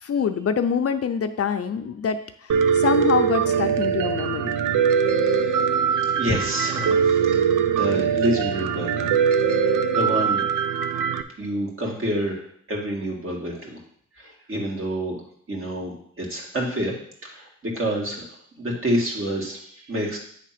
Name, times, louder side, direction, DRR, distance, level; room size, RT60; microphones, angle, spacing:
voice 1, 0.0-4.6, left 7 dB, 50° left, 8 dB, 0.5 m, -25 dB
Piano, 2.5-11.2, right 7 dB, 80° right, 0.7 m, -22 dB
voice 2, 5.1-5.6 6.1-7.3 7.7-9.1 9.6-10.4 11.4-13.8 14.1-15.2 15.5-17.0 17.2-18.2 18.6-20.2, equal, 40° right, -1 dB, 2.3 m, -28 dB
9.2 x 3.6 x 5.9 m, 0.63 s
wide cardioid pair, 110°, 31 cm